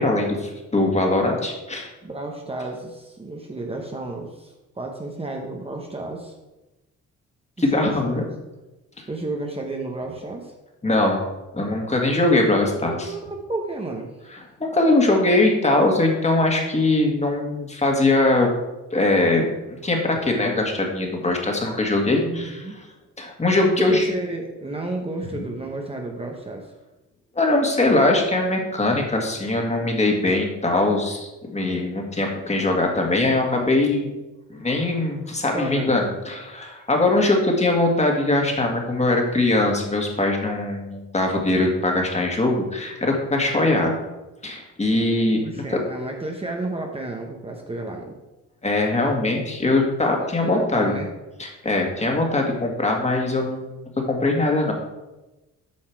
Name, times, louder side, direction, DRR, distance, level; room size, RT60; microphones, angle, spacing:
voice 1, 0.0-1.9 7.6-8.2 10.8-11.2 11.5-13.1 14.6-18.5 18.9-22.6 23.2-24.1 27.4-34.1 34.5-44.0 44.4-45.4 45.7-45.8 48.6-50.9 51.4-53.7 54.1-54.7, left 2 dB, 20° left, 1 dB, 2.0 m, -21 dB
voice 2, 2.0-6.3 7.6-8.3 9.1-10.5 12.8-14.2 22.1-22.8 23.6-26.7 35.5-36.0 45.4-48.1 50.4-51.1, right 2 dB, 20° right, 1 dB, 1.0 m, -32 dB
8.8 x 5.6 x 4.6 m, 1.0 s
cardioid pair, 90°, 30 cm